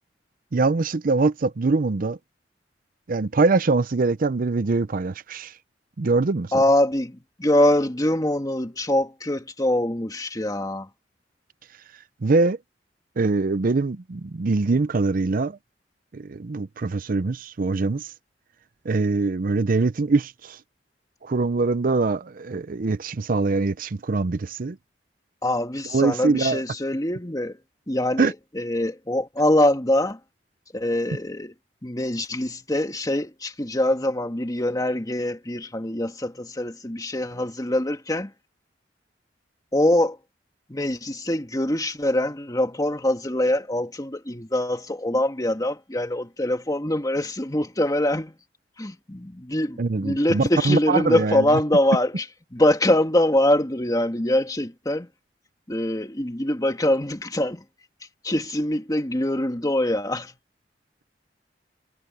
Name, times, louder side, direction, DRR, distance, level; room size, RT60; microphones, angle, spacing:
voice 1, 0.5-2.2 3.1-5.6 6.0-6.6 12.2-12.6 13.2-15.6 16.1-18.1 18.8-20.6 21.2-24.8 25.9-26.6 28.2-28.3 49.8-51.4, right 3 dB, 50° right, 0.6 m, -23 dB
voice 2, 6.5-10.9 25.4-27.6 27.9-30.2 30.7-31.5 31.8-38.3 39.7-40.2 40.7-48.3 48.8-52.2 52.5-55.1 55.7-57.6 58.2-60.3, left 1 dB, 20° left, 1.9 m, -24 dB
head